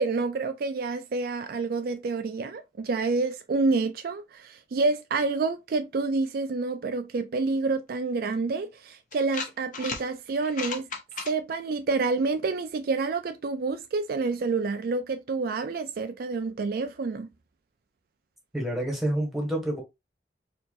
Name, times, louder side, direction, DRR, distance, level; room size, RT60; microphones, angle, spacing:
voice 1, 0.0-10.9 11.3-17.3, right 3 dB, 55° right, 0.4 m, -28 dB
sound 1, 8.3-8.4 9.1-10.0 10.4-11.3, left 5 dB, 45° left, 0.8 m, -34 dB
voice 2, 18.5-19.8, right 1 dB, ahead, 1.4 m, -28 dB
4.5 x 2.9 x 2.4 m
head